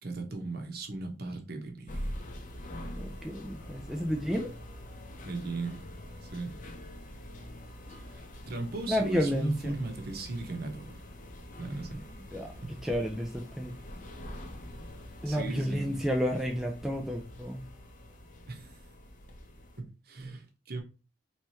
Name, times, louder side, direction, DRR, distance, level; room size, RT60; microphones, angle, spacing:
voice 1, 0.0-2.1 5.2-5.8 6.3-6.5 8.1-11.0 11.6-12.0 12.6-12.7 15.2-15.9 18.5-18.7 19.8-20.8, right 2 dB, 50° right, 1.0 m, -37 dB
sound 1, 1.9-19.8, left 1 dB, 40° left, 0.7 m, -45 dB
voice 2, 3.0-4.5 8.9-9.7 12.3-12.5 12.8-13.3 13.6-13.7 15.2-17.6, equal, ahead, 0.4 m, -31 dB
3.3 x 3.2 x 4.3 m
head